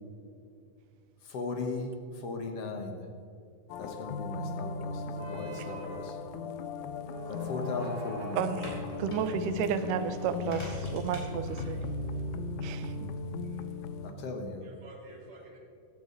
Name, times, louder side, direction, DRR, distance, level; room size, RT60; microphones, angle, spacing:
voice 1, 1.2-3.0 3.8-6.2 7.3-8.5 14.0-14.7, left 3 dB, 55° left, 3 dB, 2.1 m, -37 dB
sound 1, 3.7-14.1, left 3 dB, 80° left, 2.1 m, -38 dB
sound 2, 5.1-12.9, left 2 dB, 65° right, 3.3 m, -43 dB
sound 3, 8.3-14.5, equal, 20° left, 3.4 m, -46 dB
voice 2, 8.4-11.8 12.6-13.1, right 7 dB, 80° right, 9 dB, 2.3 m, -32 dB
voice 3, 13.7-14.3 14.6-15.6, right 2 dB, 45° right, -3 dB, 3.5 m, -52 dB
16.0 x 13.0 x 4.1 m, 2.4 s
omnidirectional pair, 3.7 m